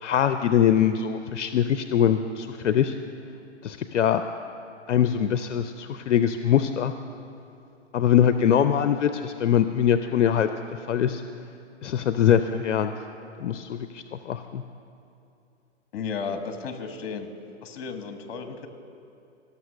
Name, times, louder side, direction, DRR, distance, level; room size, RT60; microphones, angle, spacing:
voice 1, 0.0-3.0 3.6-4.2 4.9-6.9 7.9-10.5 10.9-11.2 11.8-12.9 13.4-14.6, left 9 dB, 80° left, 10 dB, 0.6 m, -22 dB
voice 2, 15.9-17.3 17.6-18.7, left 5 dB, 55° left, 7 dB, 1.3 m, -33 dB
17.0 x 6.7 x 6.4 m, 2.6 s
hypercardioid pair, 125°, 36 cm